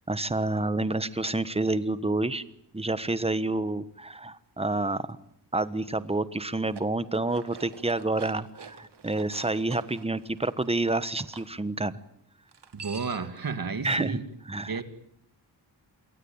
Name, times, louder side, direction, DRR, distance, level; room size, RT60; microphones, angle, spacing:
voice 1, 0.1-2.4 2.7-5.2 5.5-11.9 13.8-14.2 14.5-14.7, right 2 dB, 15° right, 14 dB, 1.2 m, -28 dB
sound 1, 6.5-11.5 12.5-13.4, right 5 dB, 75° right, 2.1 m, -47 dB
voice 2, 12.7-14.2 14.6-14.8, right 5 dB, 55° right, 10 dB, 2.5 m, -32 dB
27.0 x 23.0 x 8.8 m, 0.70 s
wide cardioid pair, 145°, 41 cm